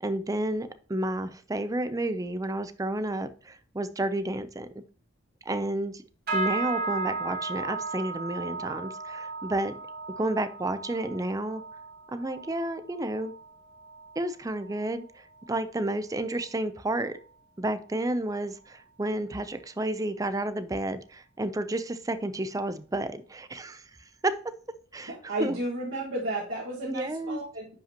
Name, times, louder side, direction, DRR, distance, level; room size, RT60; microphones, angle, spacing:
voice 1, 0.0-4.7 5.5-6.0 6.3-9.7 10.2-11.6 12.1-13.3 14.2-17.2 17.6-23.8 24.2-24.4 24.9-25.6 26.8-27.4, right 1 dB, 20° right, 12 dB, 0.5 m, -31 dB
sound 1, 6.3-15.8 16.1-16.6 17.0-17.3 17.8-17.9, right 3 dB, 55° right, 3.9 m, -36 dB
voice 2, 25.1-27.7, right 1 dB, 90° right, -5 dB, 1.8 m, -33 dB
10.0 x 5.3 x 2.9 m, 0.42 s
head